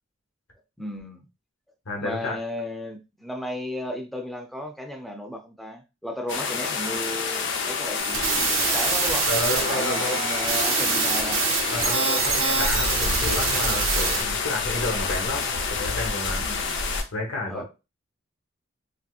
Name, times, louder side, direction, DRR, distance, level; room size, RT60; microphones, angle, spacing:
voice 1, 0.8-1.3 2.0-9.3 9.6-11.4 12.4-12.5 16.4-16.8 17.5-17.6, left 1 dB, ahead, 0.4 m, -35 dB
voice 2, 1.8-2.4 9.3-10.2 11.7-16.4 17.1-17.6, left 2 dB, 80° left, 1.1 m, -30 dB
sound 1, 6.3-17.0, left 5 dB, 65° left, 0.5 m, -28 dB
sound 2, 8.0-14.2, right 6 dB, 75° right, 0.7 m, -25 dB
sound 3, 8.1-12.7, left 3 dB, 25° left, 1.1 m, -41 dB
3.3 x 2.8 x 2.3 m
head